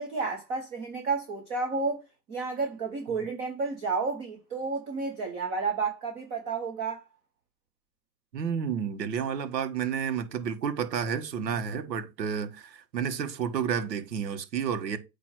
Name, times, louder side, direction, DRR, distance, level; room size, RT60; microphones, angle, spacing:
voice 1, 0.0-2.0 2.3-7.0, right 4 dB, 15° right, 0.4 m, -31 dB
voice 2, 8.3-15.0, right 7 dB, 75° right, 1.4 m, -31 dB
8.4 x 2.8 x 4.6 m
hypercardioid pair, 130°, 50 cm